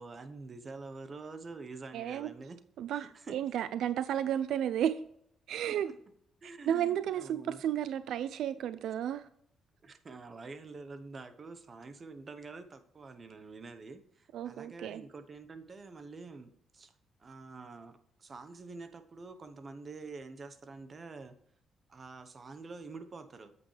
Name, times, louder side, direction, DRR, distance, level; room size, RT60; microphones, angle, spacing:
voice 1, 0.0-2.6 2.9-3.4 3.7-3.8 5.8-5.9 6.4-7.6 9.8-16.9 17.2-21.4 21.9-23.5, right 3 dB, 40° right, 1.0 m, -47 dB
voice 2, 1.9-2.3 2.8-5.0 5.5-5.9 6.4-9.3 14.3-15.0, right 10 dB, 75° right, 0.3 m, -33 dB
8.8 x 8.1 x 3.3 m
cardioid pair, 90°, 0 cm